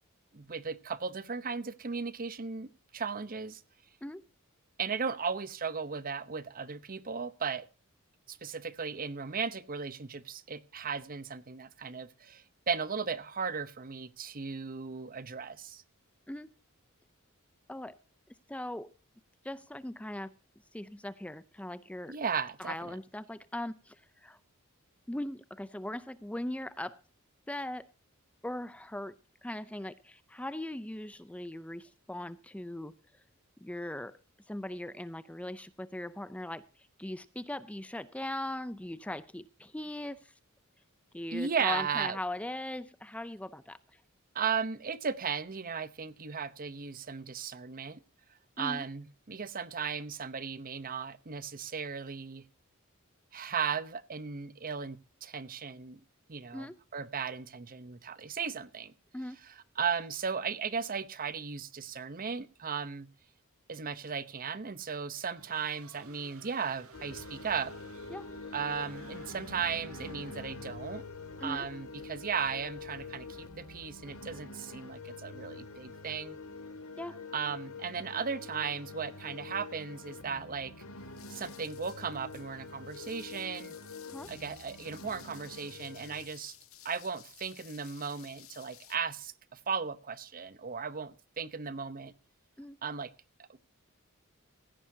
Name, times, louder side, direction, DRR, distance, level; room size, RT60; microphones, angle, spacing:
voice 1, 0.3-3.6 4.8-7.7 8.3-15.8 22.1-22.9 41.3-42.2 44.3-48.0 48.6-52.4 53.3-56.0 56.3-58.9 59.4-63.1 63.7-67.7 68.5-71.0 71.4-76.4 77.3-80.7 81.3-83.8 84.3-86.5 86.8-92.1 92.8-93.1 93.4-93.6, right 6 dB, 40° right, 0.9 m, -36 dB
voice 2, 18.5-18.9 19.4-20.3 20.7-22.2 22.6-24.4 25.1-27.0 27.5-27.9 28.4-29.2 29.4-32.9 33.6-34.2 34.5-40.3 41.1-44.0 48.6-48.9 56.5-56.8 59.1-59.4 68.1-68.3 71.4-71.7 77.0-77.2 84.1-84.3 92.6-92.8, left 1 dB, 5° left, 0.5 m, -39 dB
sound 1, 65.3-70.7, right 4 dB, 80° right, 2.2 m, -56 dB
sound 2, 66.9-86.3, left 3 dB, 90° left, 2.3 m, -46 dB
sound 3, 81.0-89.0, left 13 dB, 70° left, 1.6 m, -55 dB
16.5 x 14.0 x 2.8 m
head